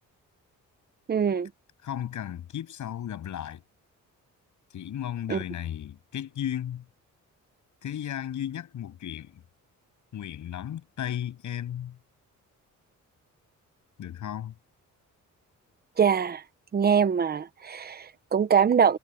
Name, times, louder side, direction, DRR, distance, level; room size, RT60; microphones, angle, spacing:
voice 1, 1.1-1.5 5.3-5.4 16.0-16.4 16.7-19.0, right 7 dB, 30° right, 0.9 m, -23 dB
voice 2, 1.8-3.6 4.7-6.8 7.8-9.4 10.1-12.0 14.0-14.5, left 10 dB, 65° left, 7.8 m, -34 dB
cardioid pair, 160°, 32 cm